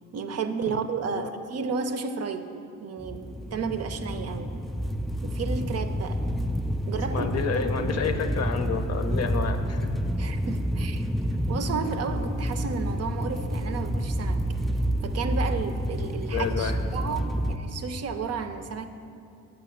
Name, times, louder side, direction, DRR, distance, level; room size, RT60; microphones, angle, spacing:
voice 1, 0.1-2.5 2.8-4.5 5.2-6.2 6.8-7.9 10.2-11.1 11.5-14.4 15.0-18.9, right 5 dB, 50° right, 8 dB, 0.6 m, -32 dB
sound 1, 3.0-17.6, equal, ahead, 0.3 m, -29 dB
voice 2, 7.1-9.9 16.3-16.8, left 6 dB, 50° left, 8 dB, 0.6 m, -29 dB
5.8 x 5.7 x 6.6 m, 2.6 s
cardioid pair, 75°, 32 cm